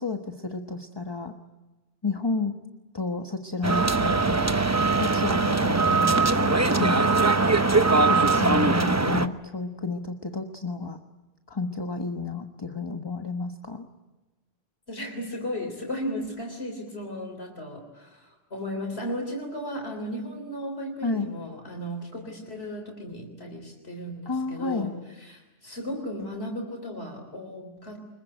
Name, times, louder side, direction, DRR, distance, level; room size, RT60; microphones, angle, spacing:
voice 1, 0.0-1.3 2.0-2.6 2.9-4.5 5.0-7.0 8.1-11.0 11.5-13.9 21.0-21.3 24.2-24.9, left 3 dB, 25° left, 5 dB, 1.2 m, -31 dB
sound 1, 3.6-9.3, right 3 dB, 15° right, 0.8 m, -21 dB
voice 2, 14.9-24.9 25.2-28.0, equal, 75° left, 2 dB, 3.9 m, -35 dB
25.5 x 22.5 x 9.0 m, 1.1 s
omnidirectional pair, 1.1 m